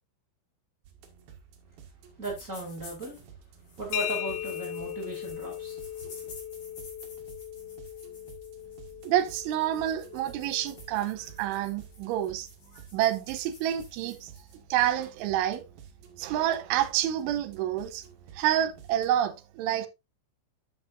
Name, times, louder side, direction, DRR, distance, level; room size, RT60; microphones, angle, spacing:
sound 1, 0.8-19.2, right 7 dB, 60° right, 3.0 m, -53 dB
sound 2, 2.2-3.2 3.6-14.5, left 2 dB, 40° left, 3.7 m, -52 dB
voice 1, 2.2-3.2 3.8-6.2, right 2 dB, 25° right, 1.8 m, -37 dB
sound 3, 3.9-11.5, left 12 dB, 80° left, 2.8 m, -39 dB
voice 2, 9.0-12.5 12.9-14.3 14.7-15.6 16.2-18.0 18.3-19.9, right 12 dB, 90° right, 3.1 m, -28 dB
9.9 x 7.5 x 2.6 m
omnidirectional pair, 5.5 m